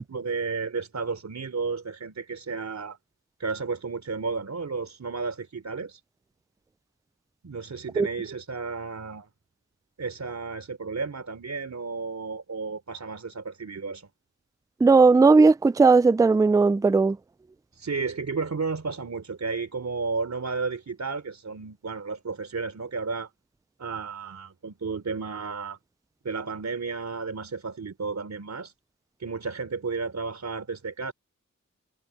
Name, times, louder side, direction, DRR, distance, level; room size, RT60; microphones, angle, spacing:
voice 1, 0.0-3.0 3.4-6.0 7.4-9.3 10.0-14.1 17.7-23.3 23.8-25.8 26.2-28.7 29.2-31.1, right 4 dB, 65° right, 3.6 m, -32 dB
voice 2, 14.8-17.2, right 4 dB, 10° right, 0.3 m, -17 dB
wide cardioid pair, 95°, 29 cm